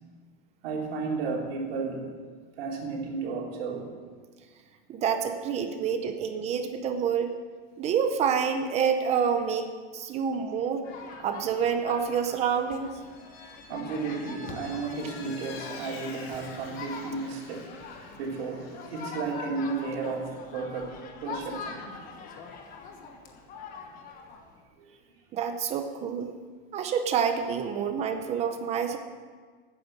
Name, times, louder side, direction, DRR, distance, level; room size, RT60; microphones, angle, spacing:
voice 1, 0.6-2.1 2.6-3.9 10.0-10.1 13.7-17.7 18.2-21.9 24.8-25.2, right 4 dB, 75° right, -1 dB, 3.3 m, -33 dB
voice 2, 4.9-7.3 7.8-10.9 11.2-13.0 25.3-26.3 26.7-29.0, right 7 dB, 20° right, 7 dB, 0.7 m, -28 dB
sound 1, 10.8-24.6, left 5 dB, 30° left, 1.3 m, -43 dB
Vehicle, 12.9-19.3, left 4 dB, 75° left, 2.7 m, -48 dB
14.5 x 9.4 x 6.6 m, 1.5 s
supercardioid pair, 170°, 30 cm